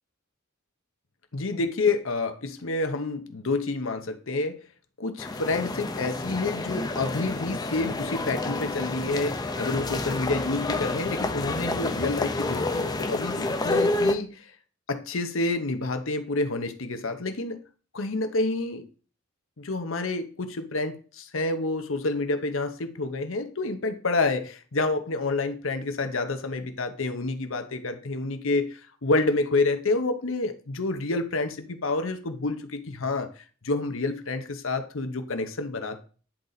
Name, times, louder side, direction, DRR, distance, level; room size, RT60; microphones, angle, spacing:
voice 1, 1.3-4.6 5.0-14.5 14.9-17.6 17.9-18.9 19.6-36.0, left 3 dB, 70° left, 7 dB, 0.9 m, -28 dB
sound 1, 5.2-14.1, left 2 dB, 20° left, 0.6 m, -29 dB
10.0 x 4.0 x 4.0 m, 0.39 s
head